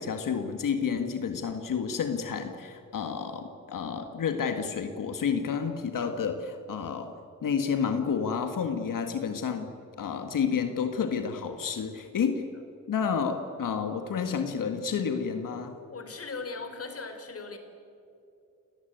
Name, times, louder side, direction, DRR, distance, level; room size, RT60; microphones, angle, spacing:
voice 1, 0.0-7.1 7.4-9.7 10.0-12.5 12.9-15.7, left 6 dB, 75° left, 6 dB, 1.8 m, -30 dB
voice 2, 15.9-17.6, left 4 dB, 45° left, 7 dB, 3.8 m, -38 dB
29.5 x 19.0 x 9.2 m, 2.7 s
wide cardioid pair, 135°, 32 cm